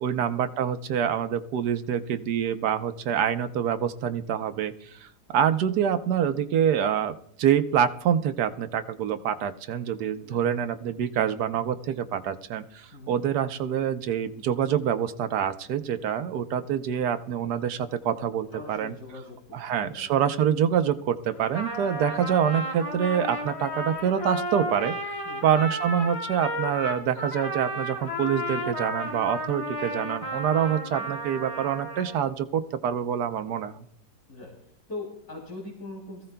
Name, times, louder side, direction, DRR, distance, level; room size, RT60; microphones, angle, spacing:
voice 1, 0.0-18.9 19.5-24.9 25.4-33.9, right 8 dB, 90° right, 10 dB, 1.3 m, -26 dB
voice 2, 18.5-20.6 22.2-22.3 25.3-25.5 30.8-31.1 34.3-34.5 34.9-36.3, left 2 dB, 70° left, -2 dB, 3.4 m, -42 dB
Trumpet, 21.3-32.2, equal, 20° left, 2.0 m, -33 dB
23.0 x 15.5 x 2.2 m, 0.66 s
omnidirectional pair, 1.7 m